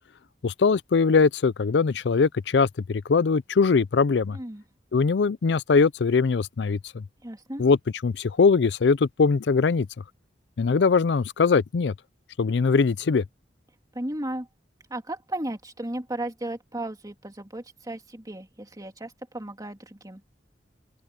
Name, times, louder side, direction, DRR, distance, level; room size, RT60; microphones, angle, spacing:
voice 1, 0.4-4.4 4.9-7.0 7.6-7.8 8.0-9.9 10.6-11.9 12.4-13.2, left 4 dB, 80° left, 0.5 m, -21 dB
voice 2, 4.3-4.6 7.2-7.6 13.9-14.5 14.9-20.2, right 1 dB, 20° right, 2.6 m, -35 dB
open air
head